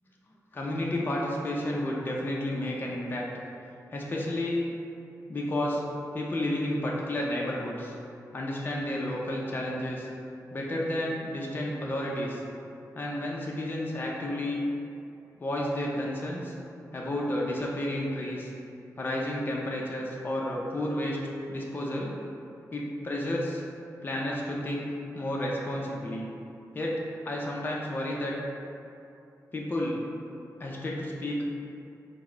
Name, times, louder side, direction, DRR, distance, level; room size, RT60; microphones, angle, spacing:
voice 1, 0.5-3.3 3.9-4.7 5.3-5.8 6.1-8.0 8.3-10.1 10.5-12.4 12.9-14.6 15.4-16.5 16.9-18.5 19.0-21.2 21.5-22.2 22.7-23.6 24.0-24.9 25.1-26.3 26.7-28.3 29.5-30.0 30.6-31.4, left 1 dB, 30° left, -3 dB, 0.5 m, -31 dB
4.7 x 2.0 x 4.3 m, 2.7 s
wide cardioid pair, 115°, 7 cm